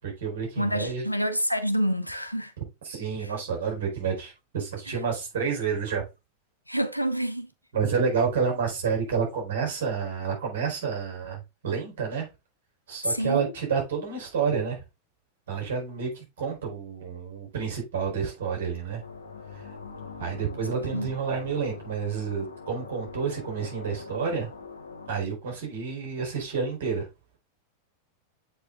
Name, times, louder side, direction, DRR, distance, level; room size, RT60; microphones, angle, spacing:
voice 1, 0.0-1.0 2.8-6.0 7.7-12.3 12.9-14.8 15.5-19.0 19.5-19.7 20.2-24.5 25.1-27.1, right 6 dB, 60° right, 4.5 m, -29 dB
voice 2, 0.6-2.5 6.7-7.5 13.0-13.5 20.9-21.1, equal, 90° left, 1.0 m, -27 dB
sound 1, 19.0-25.2, left 4 dB, 75° left, 2.1 m, -43 dB
8.0 x 4.9 x 3.6 m
figure-of-eight pair, 90°, 0 cm